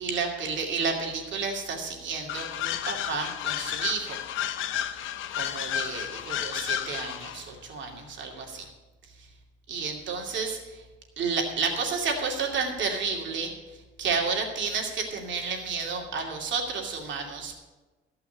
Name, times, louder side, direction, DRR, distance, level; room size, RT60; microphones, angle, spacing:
voice 1, 0.0-4.2 5.4-8.7 9.7-10.6 11.2-13.5 14.0-17.5, right 5 dB, 70° right, 2 dB, 2.4 m, -31 dB
sound 1, 2.3-7.4, left 11 dB, 80° left, 0.7 m, -32 dB
13.5 x 5.8 x 8.2 m, 1.2 s
cardioid pair, 90°, 20 cm